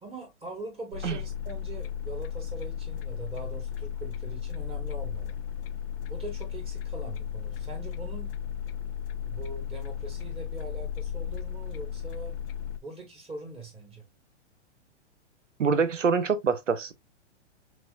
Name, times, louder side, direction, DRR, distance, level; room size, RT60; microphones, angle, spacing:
voice 1, 0.0-5.3 6.1-8.3 9.3-12.4 12.8-14.0, right 2 dB, 15° right, 1.6 m, -42 dB
sound 1, 0.9-12.8, left 9 dB, 50° left, 0.6 m, -35 dB
voice 2, 15.6-16.9, right 5 dB, 90° right, 0.8 m, -25 dB
6.0 x 2.5 x 2.4 m
hypercardioid pair, 115°, 36 cm